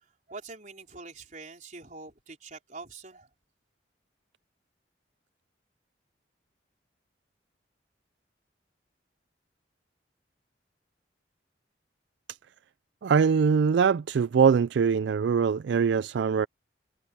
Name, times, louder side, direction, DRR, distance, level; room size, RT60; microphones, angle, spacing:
voice 1, 0.3-3.3, right 3 dB, 40° right, 4.8 m, -44 dB
voice 2, 13.0-16.5, right 6 dB, 70° right, 0.3 m, -22 dB
head